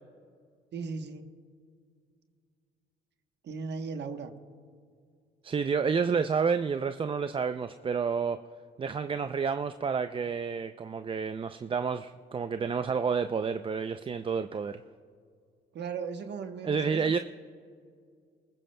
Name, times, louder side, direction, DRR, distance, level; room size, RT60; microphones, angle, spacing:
voice 1, 0.7-1.3 3.4-4.3 15.7-17.2, right 5 dB, 60° right, 7 dB, 1.0 m, -37 dB
voice 2, 5.4-8.4 8.8-14.8 16.6-17.2, right 5 dB, 25° right, 9 dB, 0.4 m, -30 dB
29.5 x 14.5 x 2.2 m, 2.2 s
cardioid pair, 90°, 20 cm